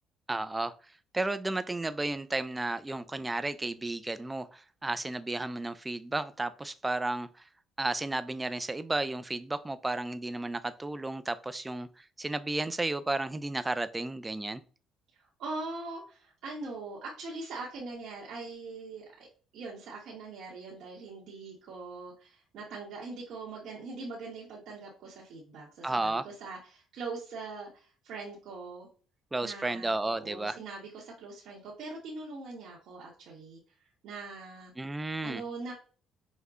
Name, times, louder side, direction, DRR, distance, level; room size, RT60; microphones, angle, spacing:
voice 1, 0.3-0.7 1.1-7.3 7.8-14.6 25.8-26.3 29.3-30.6 34.8-35.4, right 2 dB, 15° right, 0.4 m, -33 dB
voice 2, 15.1-19.3 19.5-28.9 29.4-34.7 35.2-35.7, right 3 dB, 70° right, 1.2 m, -42 dB
5.4 x 2.2 x 3.5 m
cardioid pair, 100°, 0 cm